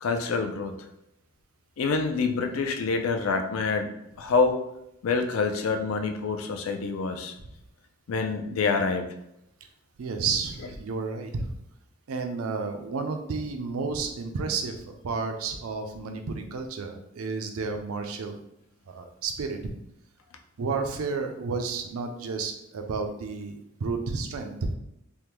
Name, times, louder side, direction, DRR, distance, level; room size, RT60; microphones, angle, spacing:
voice 1, 0.0-0.7 1.8-3.9 4.2-4.6 5.0-7.3 8.1-9.1, left 4 dB, 70° left, 5 dB, 0.4 m, -26 dB
voice 2, 10.0-11.5 12.1-18.4 18.9-19.6 20.6-24.7, right 4 dB, 80° right, 5 dB, 0.5 m, -31 dB
3.5 x 2.1 x 2.9 m, 0.81 s
head